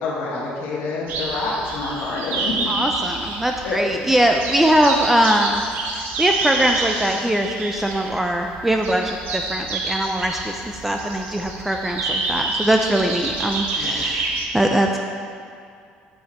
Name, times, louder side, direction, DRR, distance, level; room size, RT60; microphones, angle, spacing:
voice 1, 0.0-2.6 3.6-3.9 13.8-14.1, left 3 dB, 70° left, -5 dB, 1.1 m, -27 dB
sound 1, 1.1-14.5, right 3 dB, 65° right, 0.9 m, -28 dB
voice 2, 2.7-5.6 5.9-15.0, right 1 dB, 5° right, 3 dB, 0.3 m, -21 dB
7.8 x 3.4 x 4.2 m, 2.3 s
cardioid pair, 95°, 3 cm